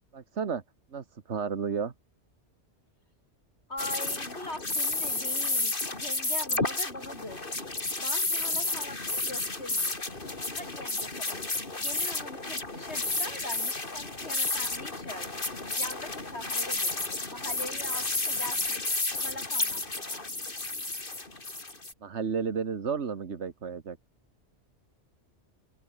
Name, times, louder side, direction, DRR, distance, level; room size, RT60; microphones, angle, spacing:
voice 1, 0.1-0.6 0.9-1.9 22.0-24.0, right 6 dB, 85° right, 1.7 m, -32 dB
voice 2, 3.7-7.5 8.0-9.9 10.5-11.4 11.8-15.3 15.8-17.0 17.3-18.8 19.2-20.4, left 1 dB, 70° left, 6.1 m, -42 dB
sound 1, 3.8-21.9, left 2 dB, 50° left, 3.3 m, -31 dB
open air
omnidirectional pair, 1.1 m